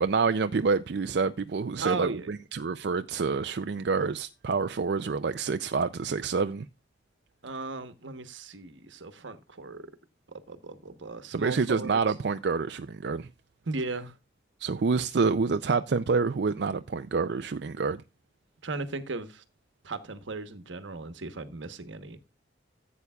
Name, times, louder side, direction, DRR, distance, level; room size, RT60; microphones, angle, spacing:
voice 1, 0.0-6.6 11.3-13.3 14.6-18.0, right 4 dB, 60° right, 0.4 m, -27 dB
voice 2, 1.8-2.3 7.4-9.9 10.3-12.0 13.6-14.1 18.6-19.4 19.8-22.2, right 3 dB, 80° right, 1.1 m, -36 dB
15.0 x 8.2 x 2.3 m
head